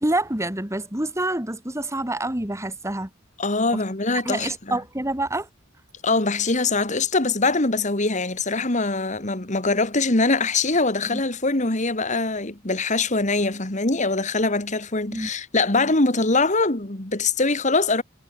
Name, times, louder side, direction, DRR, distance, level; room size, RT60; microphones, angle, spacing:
voice 1, 0.0-3.1 4.1-5.5 11.1-11.2 15.1-15.3, right 1 dB, 15° right, 2.1 m, -27 dB
voice 2, 3.4-4.8 6.0-18.0, left 3 dB, 35° left, 2.2 m, -23 dB
head